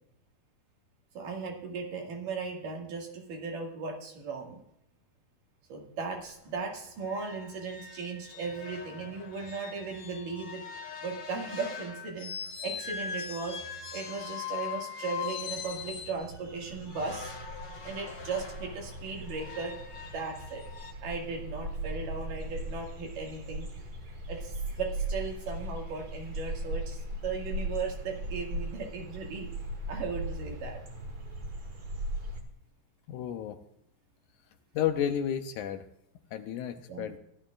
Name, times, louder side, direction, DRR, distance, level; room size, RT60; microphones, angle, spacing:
voice 1, 1.2-4.6 5.7-10.6 11.0-12.3 12.6-13.6 13.9-17.4 17.8-19.7 20.1-20.6 21.0-23.7 24.3-29.5 29.9-30.8 36.9-37.1, right 4 dB, 75° right, 0 dB, 3.7 m, -37 dB
sound 1, 6.2-6.3 6.6-6.8 7.0-16.2 16.9-20.9, left 7 dB, 50° left, 2.3 m, -41 dB
sound 2, 15.9-32.4, right 1 dB, 40° right, 1.4 m, -38 dB
voice 2, 33.1-33.6 34.7-35.8 36.3-37.2, left 9 dB, 75° left, 7 dB, 2.0 m, -31 dB
16.0 x 12.0 x 2.5 m, 0.76 s
omnidirectional pair, 3.8 m